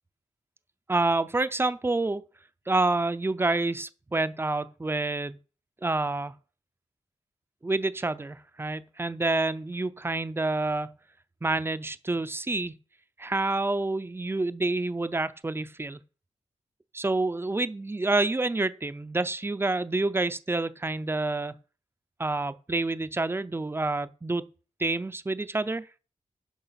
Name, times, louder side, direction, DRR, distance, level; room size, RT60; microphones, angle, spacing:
voice 1, 0.9-2.2 2.7-5.4 5.8-6.3 7.6-10.9 11.4-12.7 13.2-16.0 16.9-21.6 22.2-24.5 24.8-25.9, right 2 dB, 15° right, 0.5 m, -28 dB
11.0 x 5.9 x 5.7 m
wide cardioid pair, 140°, 13 cm